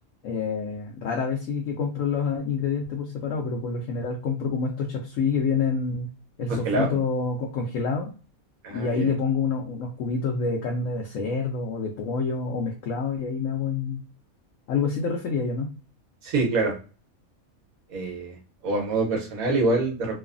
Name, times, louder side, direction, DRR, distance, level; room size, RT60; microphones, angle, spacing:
voice 1, 0.2-6.1 6.4-8.1 8.7-14.0 14.7-15.7, left 5 dB, 75° left, 0 dB, 0.9 m, -27 dB
voice 2, 6.6-7.0 8.6-9.1 16.2-16.7 17.9-18.4 18.6-20.2, right 3 dB, 80° right, 1 dB, 1.2 m, -25 dB
3.1 x 2.1 x 2.4 m, 0.35 s
omnidirectional pair, 1.5 m